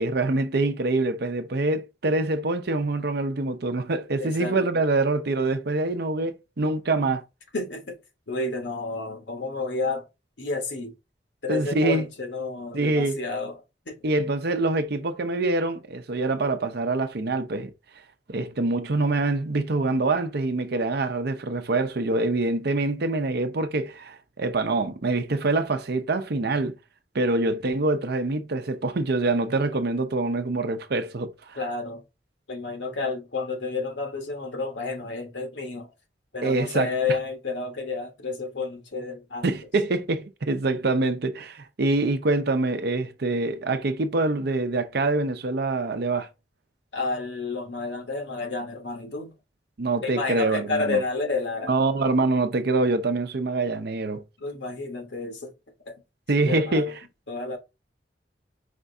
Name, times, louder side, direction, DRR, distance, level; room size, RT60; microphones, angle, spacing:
voice 1, 0.0-7.2 11.5-12.0 12.7-13.2 14.0-17.7 18.3-26.8 27.1-31.6 36.4-36.9 39.4-46.3 49.8-51.0 51.7-54.2 56.3-56.9, right 2 dB, 65° right, 0.7 m, -25 dB
voice 2, 4.2-4.6 7.5-8.0 8.3-10.1 10.4-10.9 11.4-13.6 13.8-14.1 31.5-32.0 32.5-35.9 36.3-39.5 46.9-49.3 50.0-51.7 54.4-55.5 55.9-56.0 56.4-56.8 57.3-57.6, left 3 dB, 85° left, 1.4 m, -30 dB
5.1 x 2.7 x 3.4 m
head